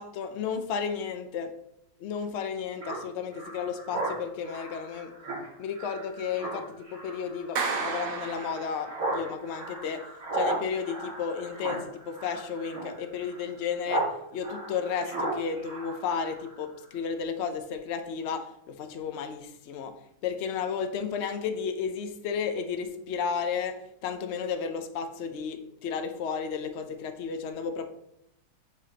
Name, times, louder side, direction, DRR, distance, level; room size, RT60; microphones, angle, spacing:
voice 1, 0.0-1.5 2.0-5.1 5.6-10.1 10.3-14.1 14.3-19.9 20.2-27.9, left 6 dB, 85° left, 7 dB, 0.6 m, -33 dB
Speech synthesizer, 2.8-14.1 14.4-16.6, right 2 dB, 50° right, 2.5 m, -36 dB
Clapping, 7.6-9.2, right 5 dB, 80° right, 1.8 m, -32 dB
9.3 x 5.1 x 2.8 m, 0.77 s
omnidirectional pair, 2.0 m